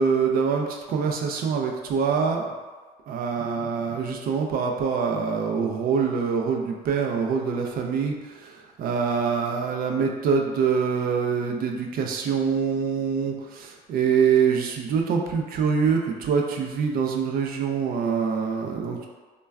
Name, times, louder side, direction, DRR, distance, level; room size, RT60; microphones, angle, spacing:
voice 1, 0.0-2.5 3.1-19.1, right 6 dB, 60° right, 2 dB, 0.4 m, -25 dB
2.2 x 2.1 x 3.4 m, 1.4 s
cardioid pair, 110°, 17 cm